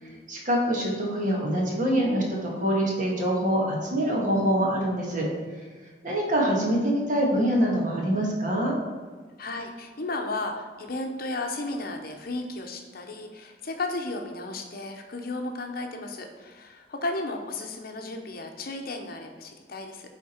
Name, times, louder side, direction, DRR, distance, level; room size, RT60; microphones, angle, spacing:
voice 1, 0.3-5.3 6.0-8.7, equal, 45° right, -2 dB, 1.6 m, -25 dB
voice 2, 9.4-20.0, left 2 dB, 55° left, 4 dB, 0.8 m, -34 dB
8.5 x 3.6 x 4.3 m, 1.5 s
head